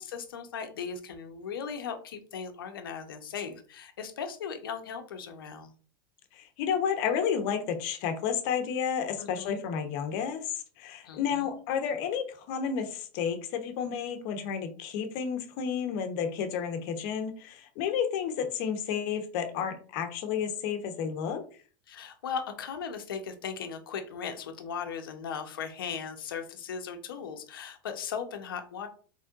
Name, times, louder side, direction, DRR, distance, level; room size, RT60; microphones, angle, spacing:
voice 1, 0.0-5.7 9.2-9.6 11.0-11.5 21.9-28.9, left 6 dB, 80° left, 6 dB, 0.9 m, -38 dB
voice 2, 6.3-21.4, left 7 dB, 60° left, 6 dB, 1.0 m, -31 dB
4.4 x 3.5 x 2.5 m, 0.40 s
hypercardioid pair, 100°, 12 cm